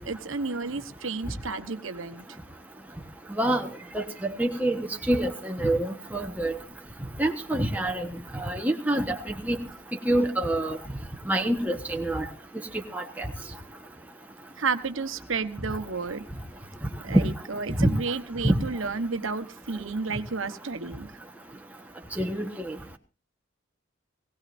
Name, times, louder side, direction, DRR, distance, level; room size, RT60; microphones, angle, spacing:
voice 1, 0.0-2.3 14.6-16.3 17.0-21.1, right 4 dB, 75° right, 8 dB, 1.1 m, -32 dB
voice 2, 3.4-3.7 3.9-6.6 7.2-9.2 9.4-9.6 10.1-10.8 11.3-12.2 12.9-13.3 17.1-17.3 17.8-17.9 18.4-18.6 22.2-22.8, right 1 dB, 10° right, 3 dB, 1.2 m, -26 dB
21.0 x 17.0 x 2.6 m, 0.33 s
head